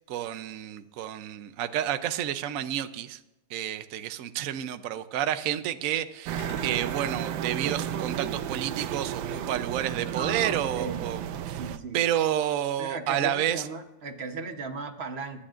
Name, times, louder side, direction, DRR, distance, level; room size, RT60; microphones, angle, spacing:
voice 1, 0.1-3.2 3.5-11.2 11.5-11.6 11.9-13.6, right 11 dB, 65° right, 10 dB, 0.9 m, -30 dB
sound 1, 5.2-10.7, left 1 dB, 35° left, 5.3 m, -55 dB
sound 2, 6.3-11.8, right 9 dB, 85° right, 1.4 m, -33 dB
voice 2, 10.2-11.1 11.5-12.0 12.8-15.4, right 4 dB, 40° right, 6 dB, 1.0 m, -36 dB
24.5 x 11.5 x 2.5 m, 0.97 s
omnidirectional pair, 2.0 m